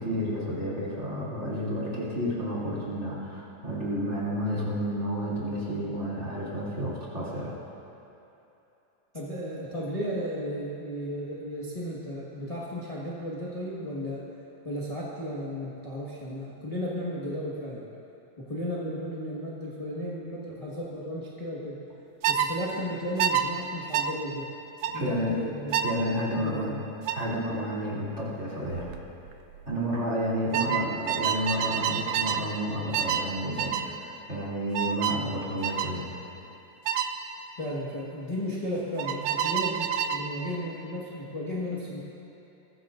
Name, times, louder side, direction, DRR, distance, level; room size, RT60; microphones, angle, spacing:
voice 1, 0.0-7.6 24.9-25.4 25.8-26.7 27.1-28.9 29.6-33.9 34.3-36.1, equal, 25° right, -8 dB, 3.0 m, -31 dB
voice 2, 9.1-14.2 14.6-17.8 18.4-21.8 22.3-24.5 24.9-25.7 26.3-26.8 30.5-30.9 37.6-42.0, equal, 20° left, -7 dB, 1.0 m, -34 dB
sound 1, 22.2-22.5 23.2-23.5 23.9-24.1 24.8-25.0 25.7-26.0 27.1-27.3 28.7-29.0 29.3-29.6 30.5-32.5 32.9-33.3 33.6-33.9 34.7-35.2 35.6-35.9 36.9-37.1 39.0-40.3, right 9 dB, 80° right, 1.9 m, -28 dB
21.5 x 15.0 x 2.6 m, 3.0 s
omnidirectional pair, 3.3 m